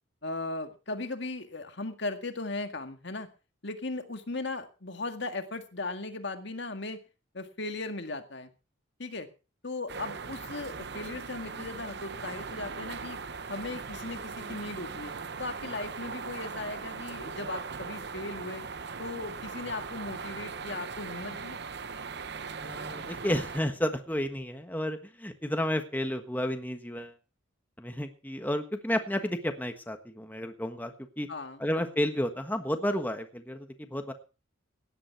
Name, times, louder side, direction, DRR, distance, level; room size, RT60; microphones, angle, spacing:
voice 1, 0.2-3.3 3.6-7.0 7.3-8.5 9.0-9.3 9.6-13.2 13.5-15.1 15.4-18.6 19.0-21.6 31.3-31.6, left 2 dB, 60° left, 7 dB, 1.9 m, -37 dB
sound 1, 9.9-23.6, right 5 dB, 55° right, 0.9 m, -39 dB
voice 2, 22.6-27.1 27.8-31.3 31.6-34.1, left 1 dB, 10° left, 6 dB, 1.4 m, -31 dB
17.0 x 11.0 x 4.6 m, 0.34 s
head